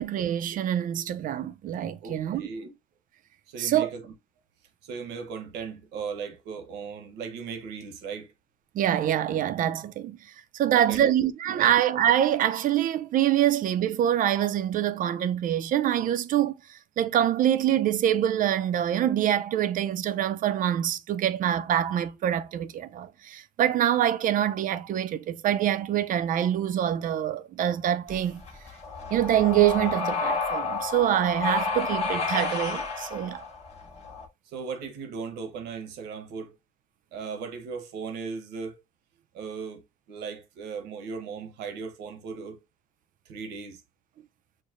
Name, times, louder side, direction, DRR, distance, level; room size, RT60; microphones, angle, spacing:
voice 1, 0.0-2.5 3.6-3.9 8.7-10.2 10.5-28.4 29.1-33.4, right 11 dB, 55° right, 0.5 m, -25 dB
voice 2, 2.0-2.7 3.5-4.1 4.8-8.3 10.6-11.1 11.5-11.7 34.5-36.6 37.1-38.8 39.3-39.8 40.1-42.6 43.3-43.8, right 5 dB, 90° right, 1.0 m, -37 dB
sound 1, 28.1-34.3, left 4 dB, 40° left, 1.2 m, -31 dB
6.3 x 2.1 x 2.5 m
cardioid pair, 110°, 17 cm